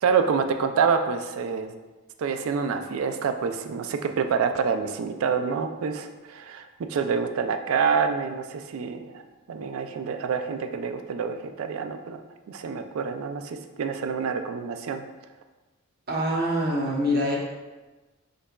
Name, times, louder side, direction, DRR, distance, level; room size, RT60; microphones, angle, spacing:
voice 1, 0.0-1.7 2.2-9.2 9.5-12.2 12.5-15.0, right 6 dB, 70° right, 7 dB, 0.3 m, -27 dB
voice 2, 16.1-17.3, equal, 45° right, -2 dB, 0.8 m, -24 dB
5.2 x 3.8 x 2.3 m, 1.2 s
head